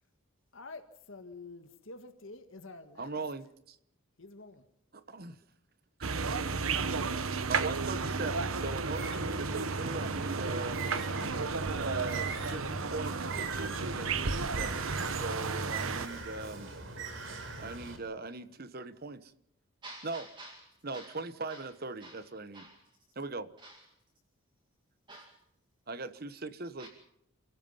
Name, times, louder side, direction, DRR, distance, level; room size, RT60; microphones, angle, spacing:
voice 1, 0.5-3.2 4.2-4.6, left 3 dB, 65° left, 1.8 m, -48 dB
voice 2, 3.0-3.8 4.9-5.4 6.0-6.2 7.5-10.9 11.8-16.7 17.6-19.3 20.0-20.2 20.8-22.7 23.1-23.5 25.9-26.9, right 3 dB, 45° right, 1.2 m, -40 dB
sound 1, 6.0-16.1, right 4 dB, 80° right, 1.2 m, -33 dB
Bird, 8.9-18.0, right 4 dB, 65° right, 4.0 m, -41 dB
voice 3, 19.8-21.2 21.5-21.7 22.0-22.2 22.5-23.0 23.6-23.9 25.1-25.4 26.8-26.9, right 2 dB, 20° right, 2.3 m, -50 dB
29.5 x 16.5 x 5.7 m
head